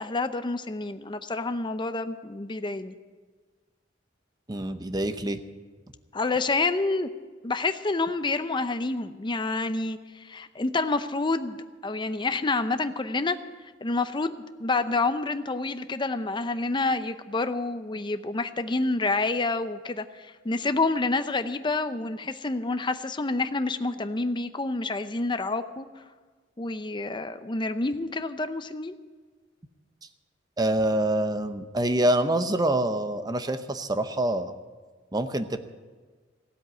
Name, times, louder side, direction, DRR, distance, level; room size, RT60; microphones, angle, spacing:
voice 1, 0.0-2.9 6.1-7.1 7.4-11.6 11.8-13.4 13.8-25.9 26.6-28.9, left 3 dB, 25° left, 10 dB, 0.6 m, -28 dB
voice 2, 4.5-5.4 30.6-34.6 35.1-35.6, right 1 dB, 20° right, 10 dB, 0.8 m, -26 dB
16.0 x 8.0 x 9.0 m, 1.4 s
head